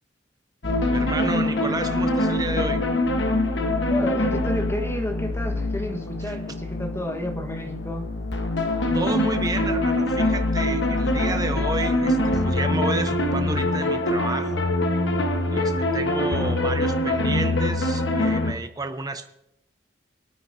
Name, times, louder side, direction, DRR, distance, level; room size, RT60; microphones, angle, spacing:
sound 1, 0.6-18.5, left 1 dB, 85° left, 1.2 m, -24 dB
voice 1, 0.9-2.8 6.3-6.4 8.9-14.6 15.5-19.3, right 3 dB, 20° right, 8 dB, 0.8 m, -31 dB
voice 2, 3.9-8.1, left 1 dB, 15° left, 3 dB, 1.3 m, -31 dB
24.5 x 8.9 x 2.7 m, 0.84 s
head